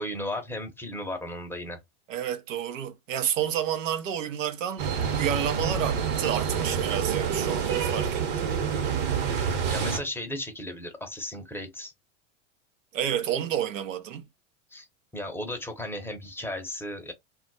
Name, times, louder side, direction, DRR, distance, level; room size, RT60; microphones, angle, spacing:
voice 1, 0.0-1.8 9.4-11.9 14.7-14.9 15.1-17.1, left 1 dB, 5° left, 0.7 m, -35 dB
voice 2, 2.1-8.5 12.9-14.3, right 10 dB, 85° right, 0.7 m, -30 dB
sound 1, 4.8-10.0, right 7 dB, 60° right, 1.1 m, -27 dB
2.3 x 2.1 x 3.9 m
hypercardioid pair, 115°, 37 cm